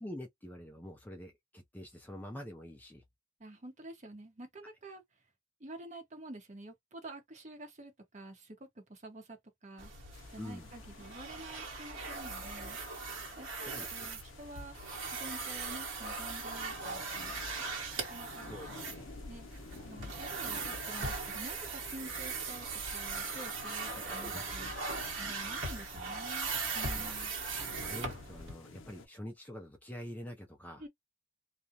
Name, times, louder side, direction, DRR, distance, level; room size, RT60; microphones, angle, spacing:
voice 1, 0.0-3.0 10.4-10.7 13.6-13.9 18.5-18.7 18.9-19.1 23.9-24.6 26.9-27.2 27.8-30.8, equal, 10° left, 0.4 m, -46 dB
voice 2, 3.4-5.0 5.6-9.9 10.3-12.8 13.4-14.8 15.0-17.4 18.1-18.5 19.3-19.5 19.9-22.7 22.9-27.3 30.8-30.9, right 1 dB, 35° right, 0.8 m, -49 dB
sound 1, 9.8-28.5, right 4 dB, 65° right, 1.1 m, -39 dB
sound 2, 10.1-29.1, left 3 dB, 70° left, 0.6 m, -54 dB
2.4 x 2.0 x 2.7 m
head